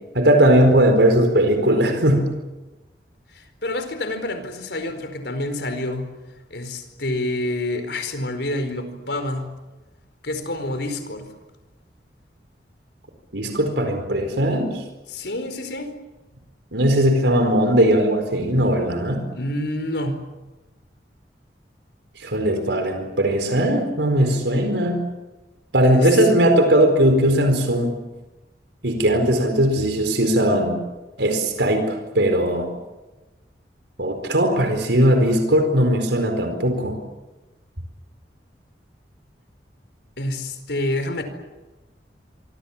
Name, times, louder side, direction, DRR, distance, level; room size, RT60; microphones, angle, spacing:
voice 1, 0.1-2.3 13.3-14.8 16.7-19.2 22.2-25.0 25.7-27.9 28.8-30.8 31.2-32.7 34.0-37.0, right 1 dB, 85° right, 6 dB, 4.5 m, -19 dB
voice 2, 3.3-6.1 6.5-9.5 10.2-11.3 15.1-15.9 19.3-20.2 25.8-26.3 40.2-41.2, left 1 dB, 75° left, 8 dB, 4.7 m, -28 dB
26.5 x 25.0 x 7.4 m, 1.1 s
head